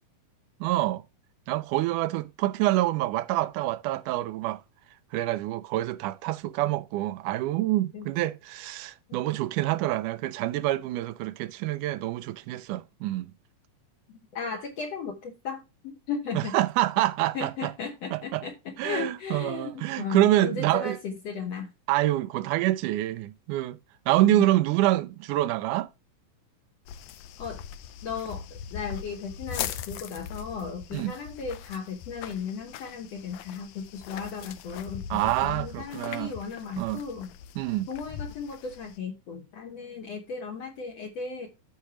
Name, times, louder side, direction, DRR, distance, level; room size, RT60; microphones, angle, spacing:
voice 1, 0.6-1.0 1.5-4.6 5.1-13.3 16.4-17.7 18.1-18.5 18.8-21.0 21.9-23.8 24.1-25.9 30.9-31.1 35.1-36.3 36.8-37.0 37.6-37.9, right 15 dB, 80° right, 1.9 m, -26 dB
voice 2, 14.3-16.5 17.3-21.7 24.3-24.4 27.4-27.6 28.0-37.3 37.9-41.5, left 5 dB, 60° left, 2.0 m, -36 dB
sound 1, 26.9-39.0, left 9 dB, 80° left, 1.6 m, -40 dB
14.0 x 4.6 x 2.9 m
omnidirectional pair, 3.9 m